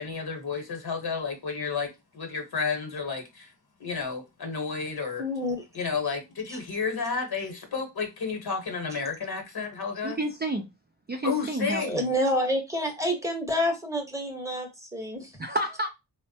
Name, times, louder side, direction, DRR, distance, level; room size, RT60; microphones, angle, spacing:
voice 1, 0.0-3.5 3.8-5.2 5.7-10.2 11.2-12.1, left 5 dB, 55° left, 1.1 m, -31 dB
voice 2, 5.2-5.6 6.5-6.6 11.8-15.3, equal, 5° right, 0.9 m, -28 dB
voice 3, 10.0-10.7 11.1-11.8 15.4-15.9, right 1 dB, 25° right, 0.4 m, -29 dB
3.2 x 2.1 x 2.7 m
cardioid pair, 60°, 43 cm